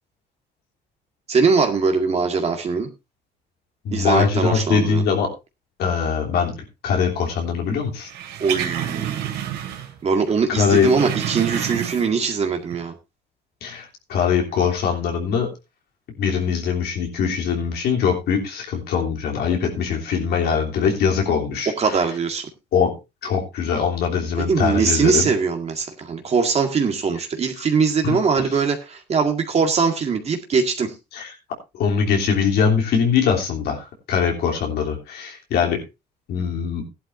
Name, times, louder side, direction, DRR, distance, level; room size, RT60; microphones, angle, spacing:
voice 1, 1.3-2.9 3.9-5.0 8.4-9.3 10.0-13.0 21.8-22.5 24.4-30.9, right 5 dB, 40° right, 4 dB, 1.9 m, -21 dB
voice 2, 3.9-5.3 5.8-6.6 6.8-8.1 10.5-10.9 13.6-15.5 16.2-22.0 22.7-22.9 23.2-25.3 28.0-28.5 31.1-31.3 31.7-35.8 36.3-36.8, left 6 dB, 70° left, 2 dB, 3.3 m, -22 dB
sound 1, 8.1-10.0 10.3-12.3 12.6-12.7, right 10 dB, 85° right, 2.6 m, -29 dB
15.0 x 11.5 x 2.7 m, 0.25 s
cardioid pair, 110°, 17 cm